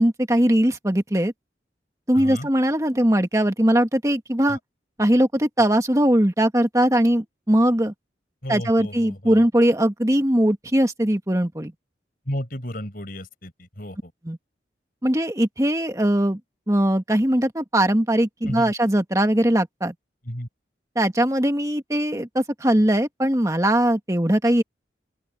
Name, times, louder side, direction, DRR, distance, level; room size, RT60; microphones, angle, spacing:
voice 1, 0.0-1.3 2.1-4.6 5.0-7.9 8.5-11.7 14.2-14.4 15.0-16.4 16.7-19.9 20.9-24.6, right 1 dB, 15° right, 1.6 m, -20 dB
voice 2, 2.1-2.5 4.5-4.6 8.4-9.4 12.3-14.1 18.5-18.7 20.2-20.5, equal, 50° left, 5.7 m, -33 dB
open air
head